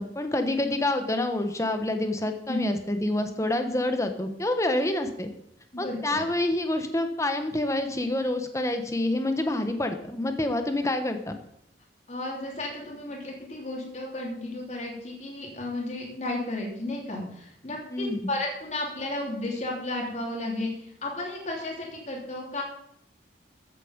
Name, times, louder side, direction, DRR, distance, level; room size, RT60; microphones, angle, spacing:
voice 1, 0.0-5.3 5.8-11.3 17.9-18.3, left 1 dB, 15° left, 7 dB, 1.2 m, -27 dB
voice 2, 5.7-6.2 12.1-22.6, left 2 dB, 40° left, -1 dB, 3.3 m, -33 dB
14.5 x 8.4 x 5.3 m, 0.73 s
head